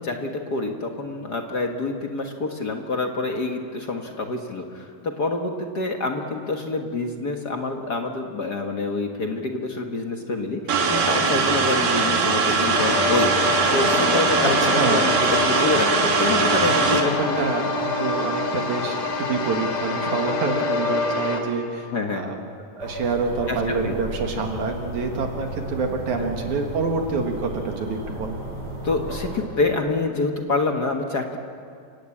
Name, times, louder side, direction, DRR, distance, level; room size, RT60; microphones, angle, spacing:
voice 1, 0.0-17.5 21.9-22.3 23.5-23.9 24.3-24.4 26.2-26.3 28.8-31.4, left 3 dB, 45° left, 3 dB, 1.3 m, -27 dB
sound 1, 10.7-17.0, right 4 dB, 85° right, 4.0 m, -21 dB
sound 2, 12.8-21.4, left 3 dB, 70° left, 3.7 m, -26 dB
voice 2, 14.4-15.2 16.7-22.4 22.7-28.4, right 4 dB, 65° right, 3 dB, 2.9 m, -27 dB
sound 3, 22.8-29.4, right 1 dB, 40° right, 6.8 m, -34 dB
29.0 x 17.5 x 8.6 m, 2.3 s
omnidirectional pair, 3.9 m